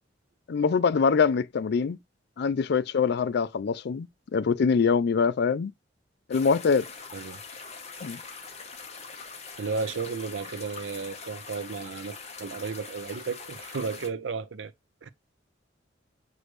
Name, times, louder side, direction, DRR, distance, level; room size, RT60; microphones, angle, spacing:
voice 1, 0.5-2.0 2.4-4.1 4.3-5.7 6.3-6.9 8.0-8.2, left 5 dB, 60° left, 0.4 m, -24 dB
sound 1, 6.3-14.1, left 4 dB, 35° left, 1.1 m, -43 dB
voice 2, 9.6-14.7 15.0-15.1, right 4 dB, 75° right, 0.5 m, -34 dB
6.2 x 2.5 x 3.2 m
head